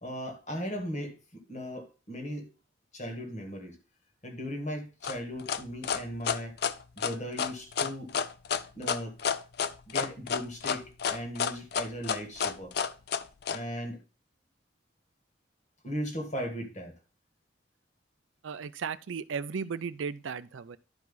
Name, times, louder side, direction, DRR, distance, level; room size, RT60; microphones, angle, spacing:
voice 1, 0.0-2.5 2.9-3.8 4.2-6.6 7.0-8.2 8.7-9.1 9.9-12.7 13.5-14.0 15.8-17.0, equal, 35° left, 2.0 m, -37 dB
sound 1, 5.0-13.6, left 7 dB, 55° left, 0.5 m, -30 dB
voice 2, 18.4-20.8, right 6 dB, 85° right, 0.5 m, -35 dB
11.5 x 4.7 x 4.0 m
head